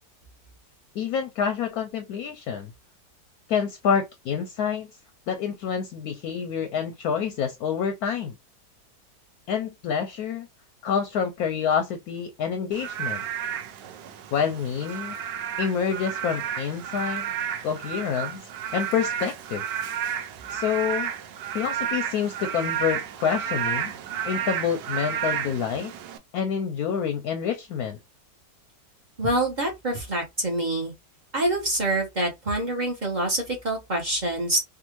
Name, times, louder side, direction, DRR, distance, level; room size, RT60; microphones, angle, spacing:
voice 1, 0.9-2.7 3.5-4.9 5.3-8.3 9.5-10.5 10.8-13.2 14.3-15.1 15.6-17.3 17.6-18.4 18.7-19.6 20.5-21.1 21.5-23.9 24.2-25.9 26.3-28.0, left 7 dB, 70° left, 0.9 m, -27 dB
Frog / Rain, 12.7-26.2, right 8 dB, 85° right, 1.2 m, -32 dB
voice 2, 29.2-30.9 31.3-34.6, right 1 dB, 40° right, 0.6 m, -26 dB
3.5 x 2.3 x 2.9 m
omnidirectional pair, 1.9 m